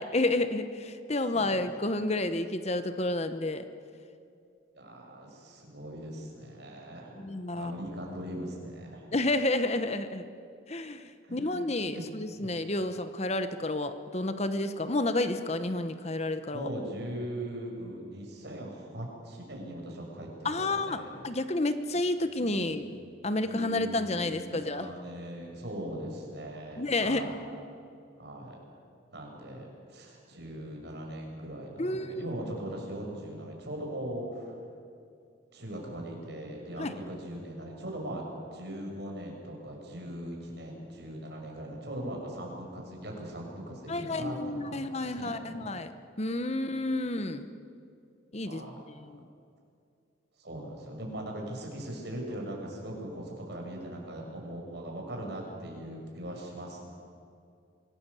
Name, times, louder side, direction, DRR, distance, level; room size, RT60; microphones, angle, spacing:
voice 1, 0.0-3.6 7.2-7.7 9.1-10.3 10.7-16.7 20.4-24.9 26.8-27.3 31.8-32.3 36.8-36.9 43.9-45.9 46.2-47.5 48.3-48.6 48.9-49.2, left 2 dB, 35° left, 10 dB, 0.9 m, -30 dB
voice 2, 4.7-7.3 7.5-9.1 11.2-12.0 12.4-12.6 16.5-21.2 22.4-22.8 23.4-27.4 28.2-28.6 29.1-34.6 35.5-45.7 46.6-46.8 48.4-48.8 50.4-56.8, right 1 dB, 55° right, 0 dB, 6.3 m, -40 dB
25.5 x 18.0 x 8.3 m, 2.4 s
head